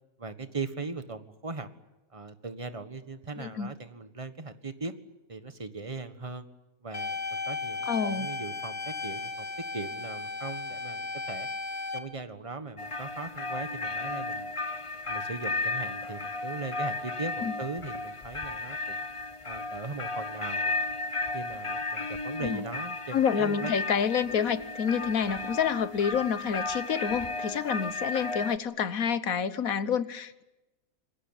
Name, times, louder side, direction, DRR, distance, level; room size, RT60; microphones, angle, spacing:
voice 1, 0.2-1.7 2.1-4.9 5.3-6.4 6.8-9.5 9.7-11.5 11.9-14.5 15.1-19.0 19.4-20.7 21.3-23.7, right 3 dB, 25° right, 11 dB, 1.6 m, -39 dB
voice 2, 3.4-3.7 7.9-8.3 17.4-17.5 22.4-22.6 23.1-30.4, left 7 dB, 75° left, 15 dB, 1.6 m, -28 dB
sound 1, 6.9-12.0, left 3 dB, 55° left, 2.5 m, -35 dB
sound 2, 12.8-28.6, left 3 dB, 25° left, 0.9 m, -34 dB
26.5 x 21.0 x 9.0 m, 0.98 s
omnidirectional pair, 1.5 m